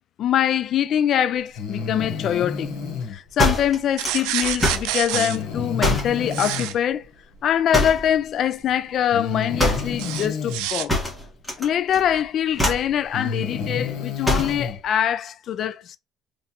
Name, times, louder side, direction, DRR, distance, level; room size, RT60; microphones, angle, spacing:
voice 1, 0.2-2.7 3.1-7.1 7.4-10.9 11.6-16.0, left 10 dB, 55° left, 0.4 m, -23 dB
Breathing, 1.5-3.1 5.1-6.7 8.1-8.2 9.1-10.7 12.2-12.3 13.0-14.8, left 5 dB, 75° left, 1.2 m, -30 dB
sound 1, 3.4-5.0 5.8-6.2 7.7-8.1 9.6-10.0 10.9-11.7 11.9-12.2 12.5-12.9 14.2-14.6, left 1 dB, 5° left, 1.6 m, -23 dB
sound 2, 4.0-5.4 6.3-6.7 10.0-10.9, right 13 dB, 85° right, 0.4 m, -27 dB
3.3 x 3.3 x 2.9 m
cardioid pair, 110°, 0 cm